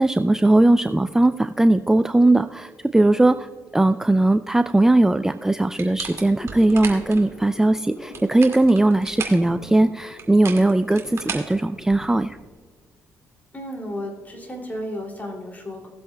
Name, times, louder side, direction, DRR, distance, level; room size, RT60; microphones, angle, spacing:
voice 1, 0.0-3.5 3.7-12.4, right 2 dB, 10° right, 10 dB, 0.3 m, -19 dB
sound 1, 5.8-7.2 8.0-9.5 10.2-12.2, right 5 dB, 50° right, 2.2 m, -35 dB
sound 2, 6.0-12.2, left 2 dB, 65° left, 2.7 m, -43 dB
voice 2, 13.5-15.9, equal, 25° left, 0 dB, 2.7 m, -33 dB
18.5 x 7.6 x 2.3 m, 1.5 s
cardioid pair, 85°, 6 cm